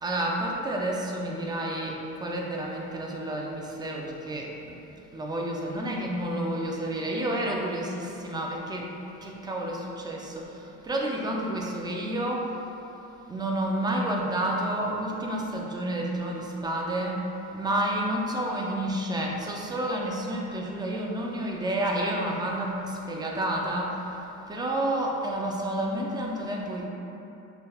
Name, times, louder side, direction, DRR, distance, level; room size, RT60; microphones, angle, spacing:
voice 1, 0.0-4.5 5.1-8.9 9.2-10.5 10.8-12.5 13.3-24.1 24.5-26.9, right 1 dB, 15° right, -1 dB, 0.4 m, -30 dB
5.6 x 3.3 x 2.3 m, 3.0 s
cardioid pair, 130°, 34 cm